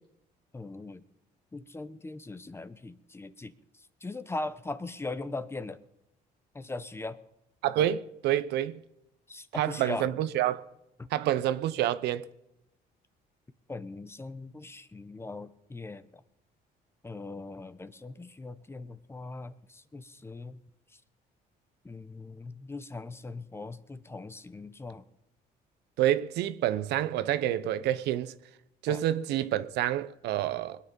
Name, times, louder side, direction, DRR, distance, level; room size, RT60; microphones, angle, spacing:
voice 1, 0.5-1.0 1.5-3.5 4.0-5.8 6.5-7.2 9.3-10.1 11.0-11.1 13.7-16.2 17.0-20.6 21.8-25.0 28.9-29.0, left 3 dB, 15° left, 0.8 m, -40 dB
voice 2, 7.6-8.8 9.5-10.6 11.1-12.3 26.0-28.3 28.8-30.8, right 12 dB, 80° right, 0.8 m, -28 dB
21.5 x 9.7 x 5.4 m
cardioid pair, 110°, 17 cm